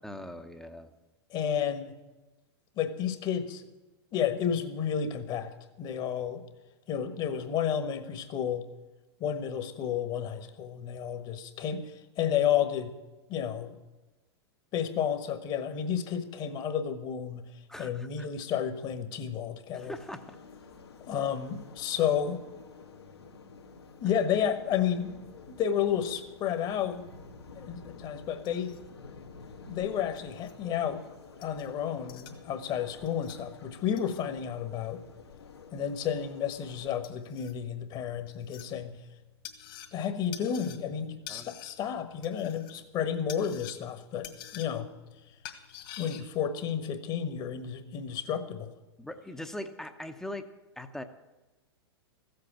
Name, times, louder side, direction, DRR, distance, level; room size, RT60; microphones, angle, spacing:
voice 1, 0.0-0.9 17.7-18.3 19.7-20.4 41.3-41.5 49.0-50.5 50.8-51.0, left 1 dB, 5° left, 7 dB, 0.9 m, -41 dB
voice 2, 1.3-1.9 2.8-3.6 4.1-5.5 5.8-6.4 6.9-8.7 9.2-12.9 13.3-13.8 14.7-17.5 17.8-19.9 21.1-22.4 24.0-25.2 25.5-27.0 27.5-28.7 29.7-31.0 31.4-35.0 35.7-39.0 39.9-44.9 46.0-48.7, left 8 dB, 35° left, 9 dB, 1.4 m, -31 dB
sound 1, 19.8-36.9, left 4 dB, 75° left, 1.7 m, -50 dB
sound 2, 28.2-46.2, left 10 dB, 50° left, 1.9 m, -50 dB
14.5 x 7.9 x 8.8 m, 1.1 s
figure-of-eight pair, 100°, 14 cm